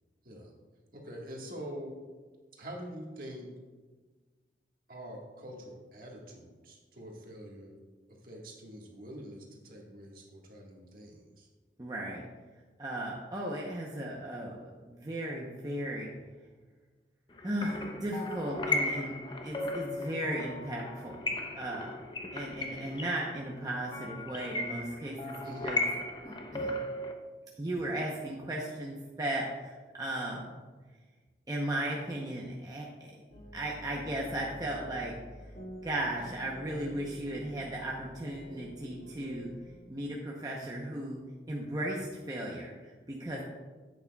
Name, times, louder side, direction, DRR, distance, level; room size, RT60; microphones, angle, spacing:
voice 1, 0.9-2.0 2.5-3.5 4.9-7.8 8.2-11.5 25.4-25.7, equal, 50° right, -1 dB, 1.5 m, -45 dB
voice 2, 11.8-12.2 12.8-16.1 17.4-19.1 19.4-21.3 21.6-22.0 22.3-25.4 25.6-25.8 26.2-26.8 27.6-30.5 31.5-33.1 33.5-35.1 35.8-39.5 39.9-41.2 41.5-43.4, right 1 dB, 20° right, -3 dB, 0.7 m, -36 dB
sound 1, 17.4-27.1, left 2 dB, 25° left, 0.6 m, -36 dB
sound 2, 33.3-39.8, equal, 85° left, 2.7 m, -49 dB
10.5 x 8.5 x 2.3 m, 1.4 s
head